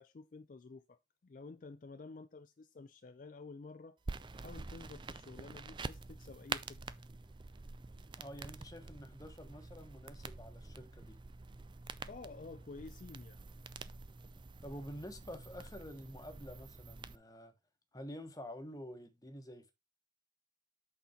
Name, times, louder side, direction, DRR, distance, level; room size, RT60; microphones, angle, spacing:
voice 1, 0.0-4.0 4.4-7.1 12.0-13.4, left 3 dB, 45° left, 0.4 m, -51 dB
sound 1, 4.0-17.2, right 4 dB, 25° right, 0.4 m, -47 dB
voice 2, 8.1-11.2 14.6-17.5 17.9-19.7, equal, 20° left, 1.1 m, -48 dB
7.8 x 4.3 x 4.2 m
head